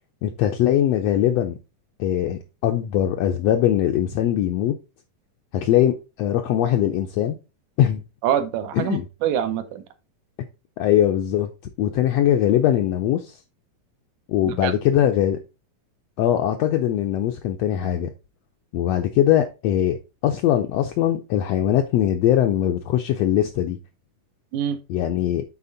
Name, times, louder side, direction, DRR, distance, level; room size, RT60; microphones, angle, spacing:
voice 1, 0.2-1.5 2.0-4.7 5.5-7.4 7.8-8.0 8.8-9.1 10.8-11.5 11.8-13.4 14.3-15.4 16.2-18.1 18.7-20.0 20.2-23.8 24.9-25.4, left 11 dB, 80° left, 1.5 m, -21 dB
voice 2, 8.2-9.8 14.5-14.7 24.5-24.8, right 10 dB, 75° right, 2.2 m, -25 dB
8.5 x 4.2 x 4.0 m
omnidirectional pair, 3.7 m